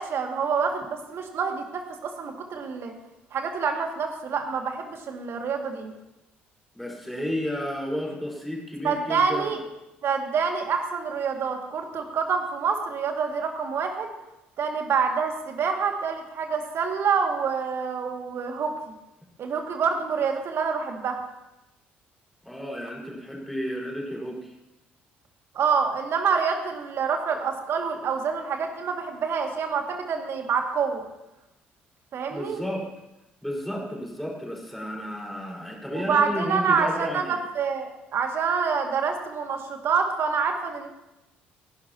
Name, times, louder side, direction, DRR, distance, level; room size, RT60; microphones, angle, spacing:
voice 1, 0.0-2.9 3.3-5.9 8.8-9.6 10.0-14.1 14.6-18.9 19.4-21.2 25.5-31.0 32.1-32.6 35.9-40.9, right 5 dB, 45° right, 4 dB, 2.2 m, -27 dB
voice 2, 6.7-9.6 22.4-24.5 32.3-32.9 33.4-37.4, equal, ahead, -2 dB, 4.9 m, -32 dB
29.0 x 11.5 x 2.9 m, 0.94 s
figure-of-eight pair, 50°, 6 cm